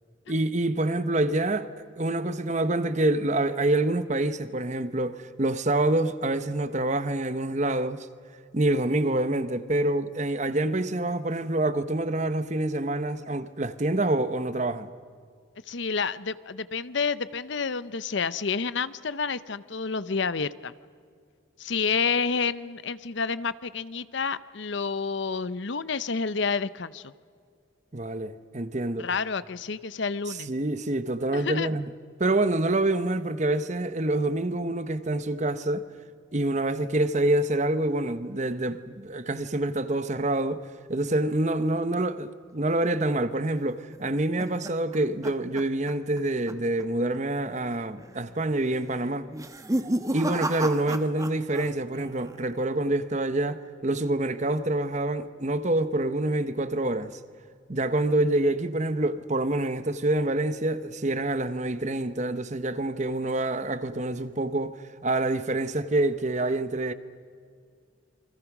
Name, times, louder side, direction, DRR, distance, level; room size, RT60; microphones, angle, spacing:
voice 1, 0.3-8.1 8.5-14.9 27.9-29.1 30.3-31.9 32.2-35.9 36.3-49.3 50.1-57.2 57.7-66.9, right 2 dB, 35° right, 1.0 m, -26 dB
voice 2, 15.7-20.7 21.6-27.1 29.0-30.5 31.3-31.7, left 5 dB, 60° left, 0.7 m, -29 dB
sound 1, 43.7-46.2 46.5-46.8 47.1-47.2 48.0-48.4 49.3-51.7 51.9-52.5, right 1 dB, 15° right, 1.0 m, -32 dB
29.0 x 24.5 x 6.1 m
head